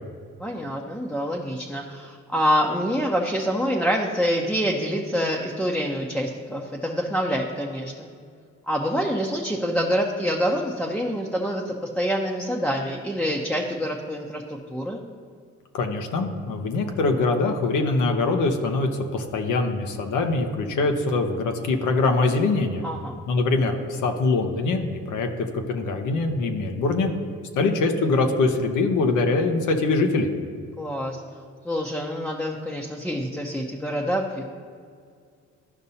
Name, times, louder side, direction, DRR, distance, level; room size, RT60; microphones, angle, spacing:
voice 1, 0.4-8.1 8.7-15.0 22.8-23.1 30.8-31.2 31.6-34.4, equal, 5° left, -2 dB, 0.7 m, -26 dB
voice 2, 15.7-22.8 23.3-25.3 25.5-27.1 27.5-30.3, left 3 dB, 80° left, 4 dB, 0.9 m, -23 dB
13.5 x 5.3 x 2.8 m, 2.2 s
cardioid pair, 90°, 30 cm